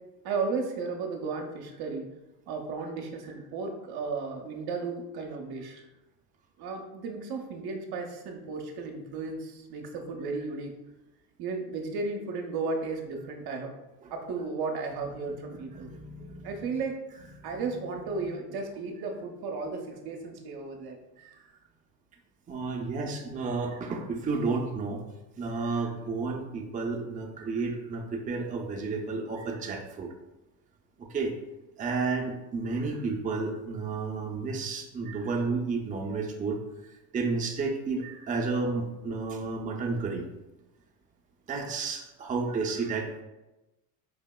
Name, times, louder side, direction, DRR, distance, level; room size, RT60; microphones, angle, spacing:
voice 1, 0.2-2.1 2.5-5.8 6.6-10.7 11.4-13.7 14.1-15.9 16.4-17.0 17.4-21.0, right 4 dB, 50° right, 2 dB, 0.7 m, -34 dB
voice 2, 15.3-16.7 17.5-17.7 18.1-18.3 21.2-21.3 22.5-25.0 25.4-30.1 31.1-31.3 31.8-36.6 37.1-40.3 41.5-43.2, right 4 dB, 15° right, 0 dB, 0.5 m, -32 dB
4.8 x 2.7 x 2.2 m, 1.0 s
hypercardioid pair, 80°, 48 cm